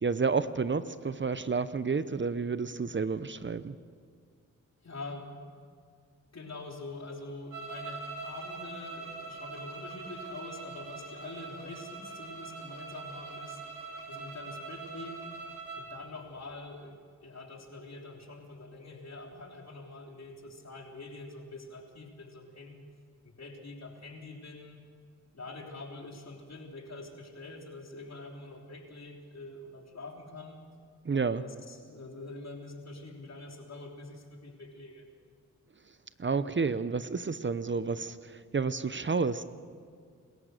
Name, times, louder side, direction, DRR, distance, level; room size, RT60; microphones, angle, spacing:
voice 1, 0.0-3.8 31.1-31.4 36.2-39.4, right 4 dB, 40° right, 14 dB, 0.9 m, -30 dB
voice 2, 4.8-5.3 6.3-13.6 14.1-15.2 15.8-22.8 23.2-24.8 25.3-30.6 31.1-35.0, left 2 dB, 55° left, 2 dB, 3.6 m, -45 dB
sound 1, 7.5-15.9, right 4 dB, 85° right, 4.0 m, -43 dB
27.0 x 15.0 x 6.7 m, 2.2 s
cardioid pair, 50°, 31 cm